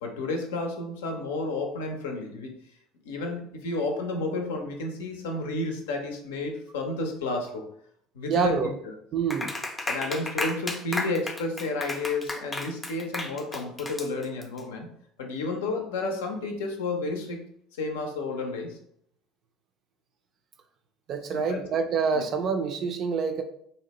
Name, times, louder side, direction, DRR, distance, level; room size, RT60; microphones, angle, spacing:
voice 1, 0.0-2.5 3.0-7.7 8.1-8.6 8.8-8.9 9.9-14.9 15.2-17.5 17.8-18.8 21.3-21.6 22.1-22.3, left 2 dB, 80° left, 3 dB, 0.5 m, -31 dB
voice 2, 8.3-8.7 9.1-9.5 21.1-23.4, right 5 dB, 50° right, 6 dB, 0.4 m, -26 dB
Clapping, 9.3-14.6, left 2 dB, 15° left, 0.5 m, -33 dB
2.7 x 2.1 x 2.8 m, 0.70 s
hypercardioid pair, 70°, 0 cm